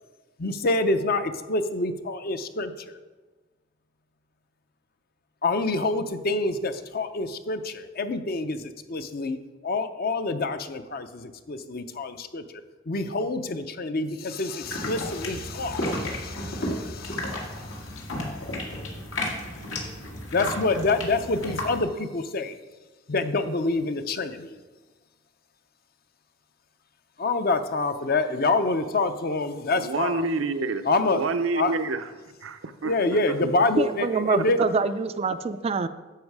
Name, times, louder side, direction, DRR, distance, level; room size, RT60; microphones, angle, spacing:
voice 1, 0.4-3.0 5.4-9.4 9.6-17.8 20.3-22.6 23.1-24.6 27.2-30.3 30.8-31.2 31.5-31.8 32.8-34.6, left 3 dB, 50° left, 9 dB, 0.6 m, -27 dB
sound 1, 14.6-21.8, left 1 dB, 80° left, 2.1 m, -33 dB
voice 2, 29.8-32.0 32.4-33.5, right 3 dB, 80° right, 9 dB, 0.6 m, -28 dB
voice 3, 33.8-35.9, right 4 dB, 30° right, 12 dB, 0.3 m, -25 dB
10.5 x 7.3 x 4.7 m, 1.3 s
head